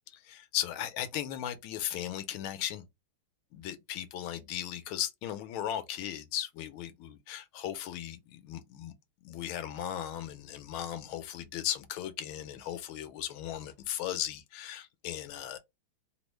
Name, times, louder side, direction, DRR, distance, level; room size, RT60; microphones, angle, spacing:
voice 1, 0.3-2.8 3.5-8.9 9.2-15.6, left 11 dB, 80° left, 1.4 m, -37 dB
3.6 x 2.0 x 3.1 m
omnidirectional pair, 2.3 m